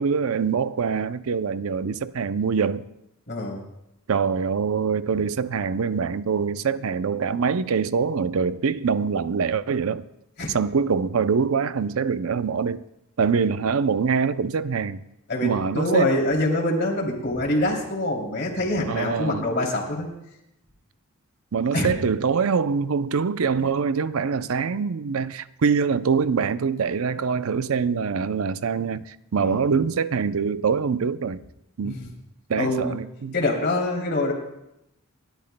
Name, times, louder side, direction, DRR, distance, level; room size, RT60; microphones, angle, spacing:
voice 1, 0.0-2.8 4.1-10.0 10.5-12.8 13.2-15.0 15.4-16.1 18.9-19.4 21.5-31.4 31.8-32.0 32.5-33.3, right 5 dB, 75° right, 0.5 m, -24 dB
voice 2, 3.3-3.6 10.4-10.5 15.3-20.1 21.7-21.9 23.6-23.7 29.4-29.7 31.8-32.1 32.6-33.0 33.3-34.3, left 1 dB, 50° left, 2.9 m, -25 dB
29.5 x 12.5 x 2.2 m
head